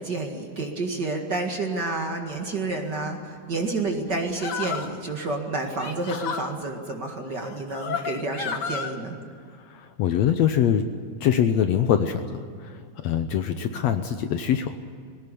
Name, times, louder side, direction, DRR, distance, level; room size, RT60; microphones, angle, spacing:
voice 1, 0.0-9.2, right 3 dB, 40° right, 2 dB, 2.1 m, -29 dB
sound 1, 4.4-5.0 5.7-6.5 7.4-8.9, left 6 dB, 50° left, 1.3 m, -32 dB
voice 2, 9.7-10.9 11.2-12.4 13.0-14.7, left 9 dB, 70° left, 8 dB, 1.8 m, -23 dB
21.5 x 17.5 x 10.0 m, 2.2 s
omnidirectional pair, 3.6 m